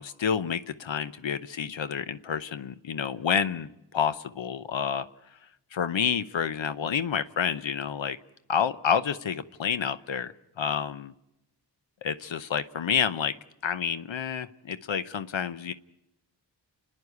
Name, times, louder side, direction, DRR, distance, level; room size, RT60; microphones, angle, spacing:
voice 1, 0.0-5.1 5.7-8.2 8.5-11.1 12.0-13.3 13.6-15.7, left 7 dB, 85° left, 13 dB, 0.8 m, -29 dB
29.5 x 9.8 x 9.6 m, 0.86 s
cardioid pair, 50°, 44 cm